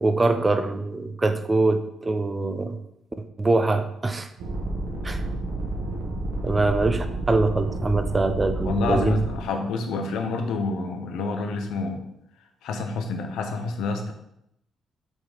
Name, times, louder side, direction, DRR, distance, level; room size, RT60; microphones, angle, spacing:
voice 1, 0.0-2.8 3.4-4.3 5.0-5.2 6.4-9.2, right 3 dB, 15° right, 8 dB, 0.4 m, -23 dB
sound 1, 4.4-9.4, right 2 dB, 90° right, 1.3 m, -30 dB
voice 2, 8.6-12.0 12.6-14.1, left 3 dB, 85° left, 5 dB, 0.9 m, -28 dB
5.4 x 3.9 x 5.1 m, 0.79 s
cardioid pair, 160°, 0 cm